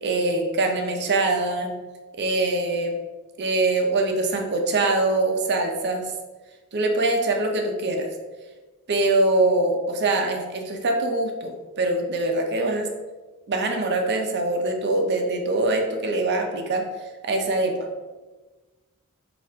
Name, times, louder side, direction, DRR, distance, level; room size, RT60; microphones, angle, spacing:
voice 1, 0.0-1.8 2.1-2.9 3.4-6.1 6.7-8.1 8.9-12.9 13.5-16.9 17.2-17.8, right 2 dB, 50° right, 3 dB, 0.6 m, -23 dB
4.0 x 2.4 x 4.3 m, 1.2 s
head